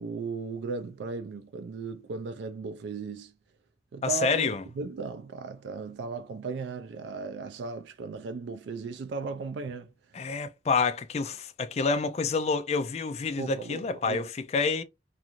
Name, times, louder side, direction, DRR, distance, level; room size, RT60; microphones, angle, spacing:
voice 1, 0.0-3.3 3.9-4.5 4.8-9.9 13.4-14.3, right 4 dB, 75° right, 0.3 m, -36 dB
voice 2, 4.0-4.6 10.1-14.8, left 4 dB, 35° left, 0.3 m, -28 dB
2.5 x 2.4 x 2.9 m
head